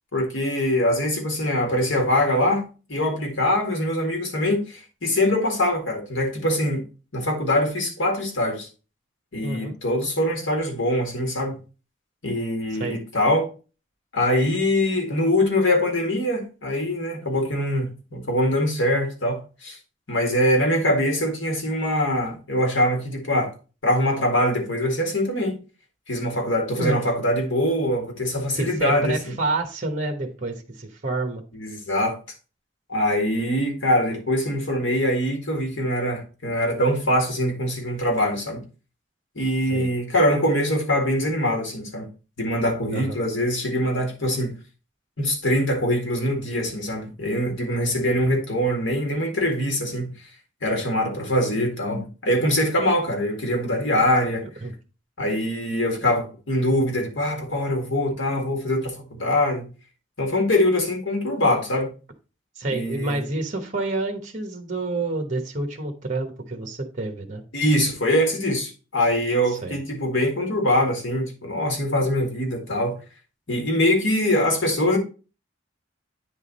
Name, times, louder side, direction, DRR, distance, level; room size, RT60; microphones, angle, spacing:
voice 1, 0.1-6.9 7.1-8.7 9.3-11.6 12.2-13.5 14.1-19.8 20.1-23.5 23.8-25.6 26.1-29.3 31.5-32.2 32.9-38.6 39.4-42.1 42.4-44.5 45.2-50.1 50.6-54.5 55.2-59.7 60.2-61.9 62.7-63.2 67.5-73.0 73.5-75.0, left 1 dB, 80° left, 1.9 m, -23 dB
voice 2, 9.4-9.7 12.7-13.0 26.8-27.0 28.5-31.4 39.6-39.9 42.9-43.2 54.6-54.7 62.6-67.4 69.5-69.8, right 2 dB, 40° right, 1.0 m, -28 dB
9.3 x 3.6 x 4.1 m
head